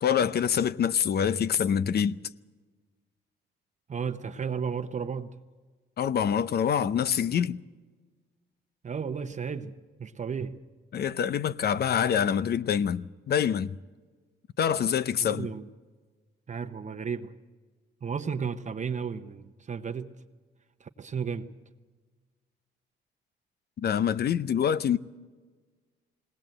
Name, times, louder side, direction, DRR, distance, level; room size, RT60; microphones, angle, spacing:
voice 1, 0.0-2.2 6.0-7.6 10.9-13.7 14.6-15.5 23.8-25.0, left 8 dB, 55° left, 0.7 m, -26 dB
voice 2, 3.9-5.4 6.8-6.9 8.8-10.6 15.2-15.7 16.5-17.3 18.0-20.1 20.8-21.5, right 6 dB, 40° right, 0.9 m, -34 dB
20.5 x 18.5 x 7.8 m
cardioid pair, 90°, 20 cm